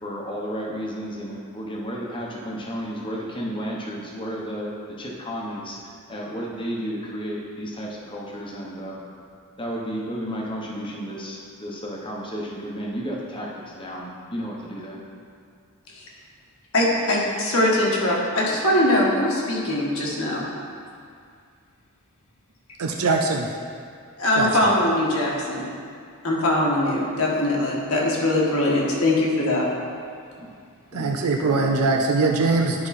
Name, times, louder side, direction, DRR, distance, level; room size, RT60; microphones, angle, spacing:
voice 1, 0.0-4.7 5.0-9.0 9.6-15.0 30.4-30.5 30.9-31.8, equal, 25° left, -3 dB, 1.0 m, -32 dB
voice 2, 16.7-20.5 24.2-25.7 26.2-29.7, left 1 dB, 70° left, -3 dB, 1.5 m, -21 dB
voice 3, 22.8-23.5 24.4-24.5 30.9-32.9, right 3 dB, 85° right, 2 dB, 0.5 m, -22 dB
10.0 x 4.7 x 4.2 m, 2.3 s
head